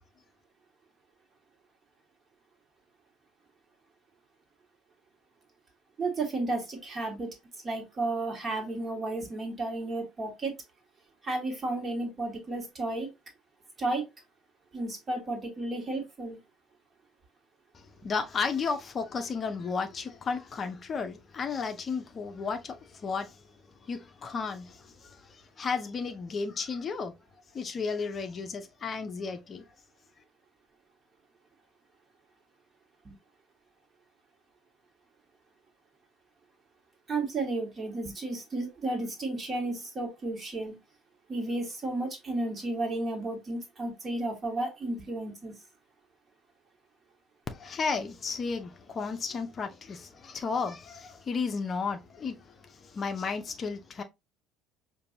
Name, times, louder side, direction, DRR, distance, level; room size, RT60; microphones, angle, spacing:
voice 1, 6.0-7.3 7.6-10.5 11.2-13.1 13.8-14.1 14.7-16.4 18.0-18.1 33.0-33.2 37.1-40.7 41.3-45.5, right 2 dB, 30° right, 1.6 m, -33 dB
voice 2, 18.0-22.8 23.0-23.3 23.9-24.8 25.6-27.1 27.5-29.6 47.5-52.4 52.9-54.0, left 5 dB, 35° left, 0.6 m, -33 dB
5.2 x 2.6 x 2.7 m
figure-of-eight pair, 60°, 0 cm